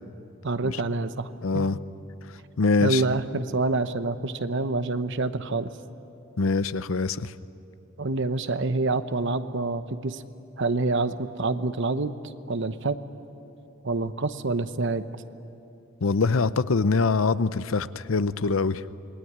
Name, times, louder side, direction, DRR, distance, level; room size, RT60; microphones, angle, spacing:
voice 1, 0.4-1.7 2.8-5.7 8.0-10.2 10.6-12.1 12.5-13.0 13.8-15.0, right 3 dB, 60° right, 11 dB, 1.0 m, -27 dB
voice 2, 1.4-1.8 2.6-3.0 6.4-7.3 16.0-18.8, left 4 dB, 75° left, 14 dB, 0.7 m, -24 dB
27.5 x 20.0 x 9.7 m, 2.8 s
head